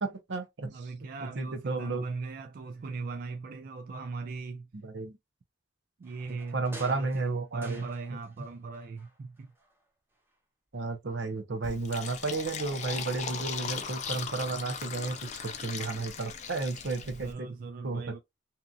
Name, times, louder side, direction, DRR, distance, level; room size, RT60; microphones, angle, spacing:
voice 1, 0.0-0.9 1.2-2.1 4.8-5.2 6.3-7.9 10.7-17.5 17.8-18.2, right 3 dB, 80° right, 0.7 m, -33 dB
voice 2, 0.7-4.7 6.0-9.5 17.0-18.2, right 4 dB, 50° right, 0.3 m, -39 dB
sound 1, 6.0-8.5 8.7-9.8 10.2-10.3, right 1 dB, 15° right, 0.7 m, -51 dB
Fill (with liquid), 11.6-17.3, left 6 dB, 40° left, 0.5 m, -38 dB
2.8 x 2.5 x 2.3 m
head